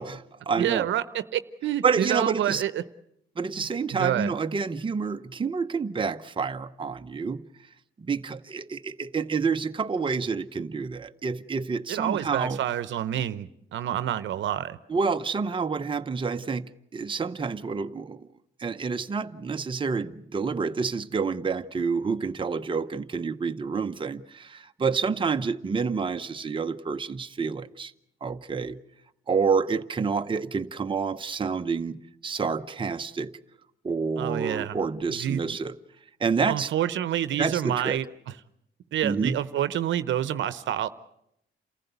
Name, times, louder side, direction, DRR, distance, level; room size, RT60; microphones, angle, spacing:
voice 1, 0.0-0.9 1.8-2.6 3.4-7.4 8.0-12.6 14.9-18.3 18.6-27.9 28.2-28.8 29.3-33.3 33.8-35.8 36.2-36.7 37.4-38.0 39.0-39.4, right 5 dB, 25° right, 0.8 m, -28 dB
voice 2, 0.6-2.8 3.9-4.3 11.9-14.8 34.2-34.8 35.1-35.6 36.5-38.1 38.9-40.9, right 11 dB, 70° right, 0.9 m, -28 dB
28.0 x 15.0 x 8.2 m
cardioid pair, 90°, 20 cm